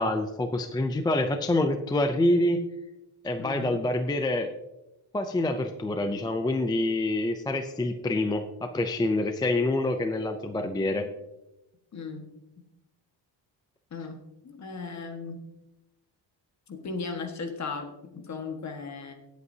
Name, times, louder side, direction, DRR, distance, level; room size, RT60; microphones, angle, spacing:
voice 1, 0.0-2.6 3.2-4.5 5.1-11.1, left 1 dB, 10° left, 7 dB, 0.3 m, -26 dB
voice 2, 3.4-3.8 10.6-11.1 11.9-12.3 13.9-15.4 16.7-19.1, left 4 dB, 35° left, 5 dB, 1.5 m, -37 dB
17.0 x 8.2 x 2.7 m, 0.95 s
cardioid pair, 175°, 47 cm